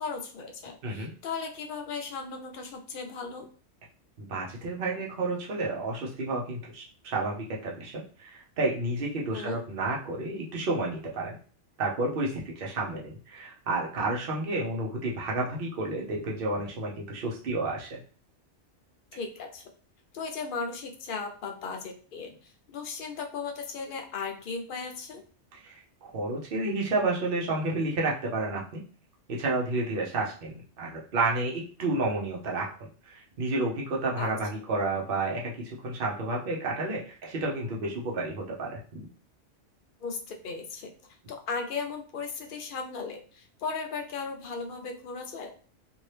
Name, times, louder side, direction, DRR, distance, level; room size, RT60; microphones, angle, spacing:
voice 1, 0.0-3.5 9.3-9.6 19.1-19.6 20.1-25.2 34.2-34.3 40.0-40.9 41.3-45.6, left 4 dB, 60° left, 4 dB, 0.6 m, -36 dB
voice 2, 4.2-11.4 11.8-18.0 25.5-28.8 29.3-39.1, right 2 dB, 50° right, -2 dB, 0.9 m, -31 dB
2.7 x 2.7 x 3.2 m, 0.42 s
omnidirectional pair, 1.3 m